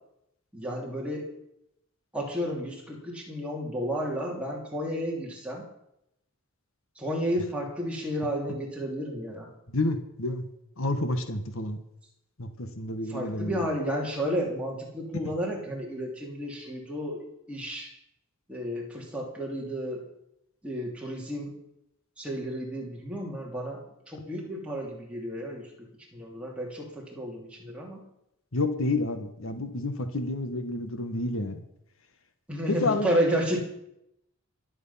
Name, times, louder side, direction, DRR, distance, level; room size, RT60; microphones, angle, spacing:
voice 1, 0.5-1.3 2.1-5.7 7.0-9.5 13.1-17.9 18.5-20.0 20.6-21.5 22.2-28.0 32.5-33.6, equal, 5° right, -2 dB, 2.9 m, -32 dB
voice 2, 9.7-10.5 10.8-11.8 12.4-13.6 15.1-15.3 28.5-31.6 32.7-33.1, left 2 dB, 70° left, 9 dB, 1.4 m, -29 dB
23.5 x 8.1 x 5.7 m, 0.81 s
head